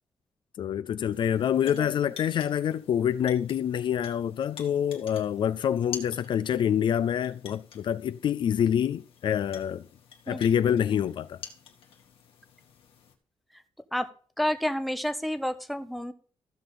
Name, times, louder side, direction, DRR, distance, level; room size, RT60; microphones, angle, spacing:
voice 1, 0.6-9.9 10.3-11.4, left 9 dB, 60° left, 0.4 m, -26 dB
sound 1, 1.1-13.1, left 6 dB, 85° left, 2.0 m, -48 dB
voice 2, 10.3-11.0 13.5-13.6 13.9-14.1 14.4-16.1, left 1 dB, ahead, 0.8 m, -31 dB
15.0 x 6.8 x 3.7 m
wide cardioid pair, 160°, 9 cm